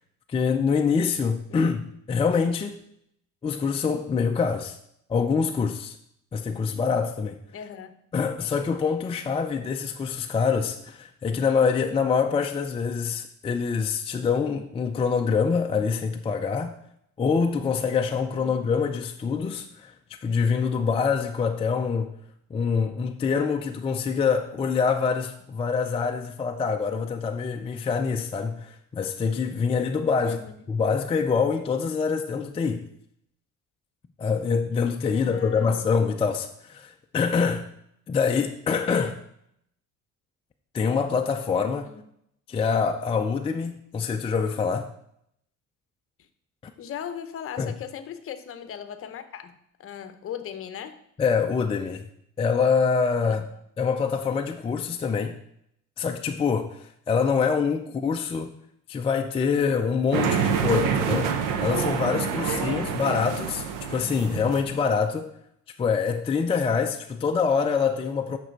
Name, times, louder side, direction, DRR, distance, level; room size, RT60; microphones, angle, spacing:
voice 1, 0.3-2.8 3.4-4.8 5.1-6.0 6.3-7.4 8.1-16.8 17.2-22.1 22.5-30.4 30.7-32.9 34.2-37.7 38.1-39.2 40.7-41.9 42.5-44.9 47.6-47.7 51.2-52.1 52.4-53.4 53.8-55.4 56.0-58.5 58.9-65.3 65.8-68.4, left 5 dB, 20° left, 0.4 m, -25 dB
voice 2, 7.5-8.0 18.4-18.6 30.2-30.5 35.1-35.8 41.8-42.0 46.8-49.5 49.8-51.0 53.2-53.4 57.9-58.1 62.8-63.1, left 8 dB, 45° left, 0.8 m, -38 dB
sound 1, 60.1-64.9, right 7 dB, 75° right, 0.9 m, -27 dB
8.9 x 6.1 x 4.5 m
cardioid pair, 145°, 32 cm